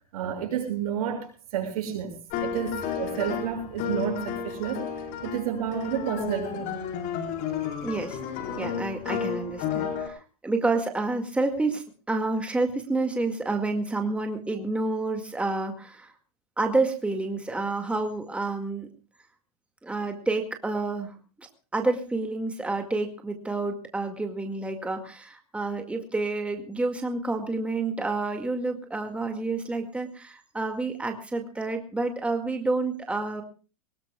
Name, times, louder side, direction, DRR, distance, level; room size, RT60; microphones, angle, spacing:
voice 1, 0.1-2.1 2.4-4.8 5.2-6.7, right 9 dB, 75° right, 4 dB, 6.8 m, -30 dB
sound 1, 2.3-10.1, left 7 dB, 50° left, 4.8 m, -32 dB
voice 2, 7.8-8.2 8.6-16.1 16.6-18.9 19.8-33.4, right 3 dB, 5° right, 4 dB, 2.0 m, -29 dB
23.0 x 20.0 x 2.3 m, 0.34 s
supercardioid pair, 125°, 19 cm